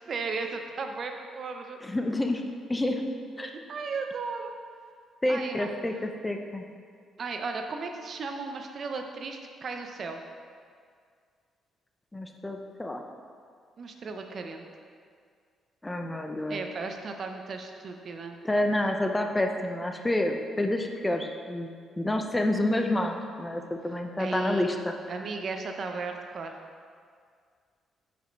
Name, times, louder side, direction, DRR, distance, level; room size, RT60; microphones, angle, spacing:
voice 1, 0.1-1.8 3.7-4.5 5.3-5.7 7.2-10.2 13.8-14.6 16.5-18.4 24.2-24.7 25.1-26.6, right 4 dB, 50° right, 4 dB, 0.8 m, -35 dB
voice 2, 1.8-3.0 3.4-3.5 5.2-6.6 12.1-13.0 15.8-16.6 18.4-21.7 22.0-24.9, left 1 dB, 15° left, 4 dB, 0.7 m, -28 dB
9.1 x 5.2 x 4.5 m, 2.1 s
cardioid pair, 90°, 0 cm